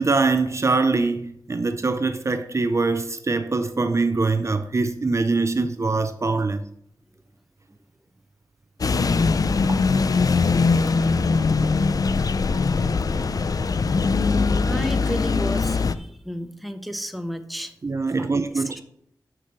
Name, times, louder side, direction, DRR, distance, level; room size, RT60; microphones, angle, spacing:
voice 1, 0.0-6.6 9.7-9.8 17.8-18.8, right 3 dB, 40° right, 0.6 m, -23 dB
sound 1, 8.8-16.0, left 4 dB, 55° left, 0.5 m, -21 dB
voice 2, 14.6-17.7 18.2-18.8, equal, ahead, 0.8 m, -33 dB
6.3 x 6.0 x 6.7 m
wide cardioid pair, 90°, 7 cm